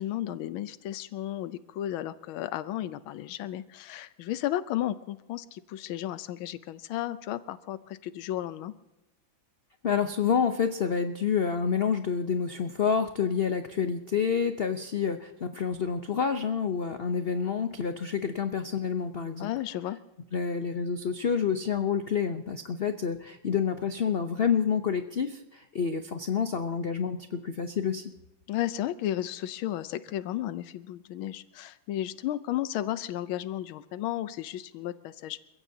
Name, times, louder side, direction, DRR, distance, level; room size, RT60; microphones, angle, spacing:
voice 1, 0.0-8.7 19.4-20.0 28.5-35.4, left 13 dB, 85° left, 13 dB, 1.5 m, -33 dB
voice 2, 9.8-19.5 20.3-28.1, left 6 dB, 65° left, 8 dB, 0.5 m, -28 dB
29.5 x 16.0 x 2.8 m, 1.0 s
omnidirectional pair, 2.2 m